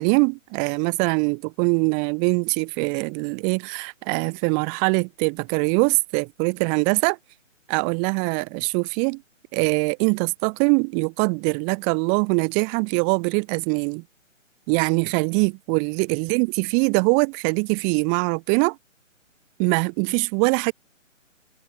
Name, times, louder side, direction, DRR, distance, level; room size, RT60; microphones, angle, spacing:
voice 1, 0.0-7.2 7.7-9.2 9.5-14.0 14.7-18.8 19.6-20.7, right 40 dB or more, 20° right, 4.1 m, -22 dB
figure-of-eight pair, 145°, 39 cm